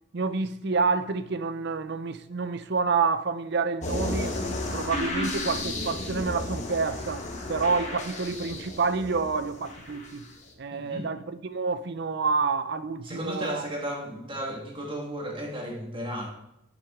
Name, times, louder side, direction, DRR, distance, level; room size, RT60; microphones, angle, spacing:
voice 1, 0.1-4.4 4.7-7.2 7.5-10.3 10.6-13.6, right 4 dB, 50° right, 0.5 m, -28 dB
sound 1, 3.8-10.4, left 2 dB, 35° left, 1.1 m, -33 dB
voice 2, 10.7-11.1 13.0-16.3, equal, 25° right, 1.6 m, -34 dB
8.4 x 6.8 x 3.6 m
head